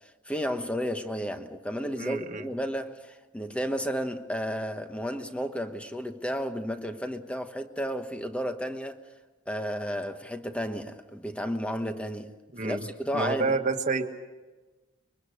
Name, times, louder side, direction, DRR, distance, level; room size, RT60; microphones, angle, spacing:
voice 1, 0.3-9.0 9.5-12.3 12.6-13.6, equal, 5° left, 1.1 m, -32 dB
voice 2, 2.0-2.5 12.5-12.8 13.1-14.0, right 4 dB, 40° right, 1.5 m, -28 dB
24.5 x 22.5 x 6.5 m
head